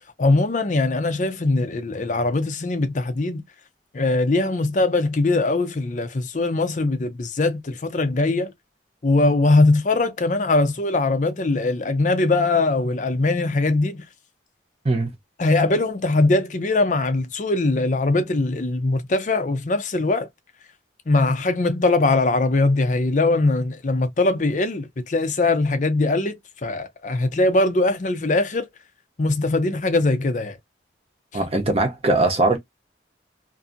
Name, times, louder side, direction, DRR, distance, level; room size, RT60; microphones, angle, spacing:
voice 1, 0.2-3.4 3.9-8.5 9.0-14.0 15.4-20.3 21.1-28.7 29.2-30.6, left 2 dB, 40° left, 0.5 m, -21 dB
voice 2, 31.3-32.6, right 2 dB, 30° right, 0.8 m, -20 dB
2.6 x 2.6 x 2.4 m
head